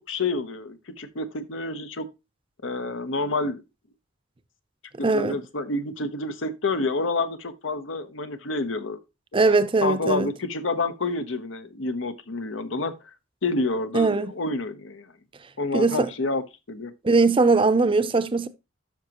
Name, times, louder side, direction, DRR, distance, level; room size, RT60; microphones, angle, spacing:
voice 1, 0.0-2.1 2.6-3.6 5.1-9.0 9.8-13.0 13.4-15.1 15.6-16.9, left 3 dB, 85° left, 1.0 m, -28 dB
voice 2, 5.0-5.4 9.3-10.3 13.9-14.3 15.7-16.1 17.0-18.5, right 3 dB, 25° right, 0.5 m, -20 dB
11.5 x 6.0 x 2.9 m
head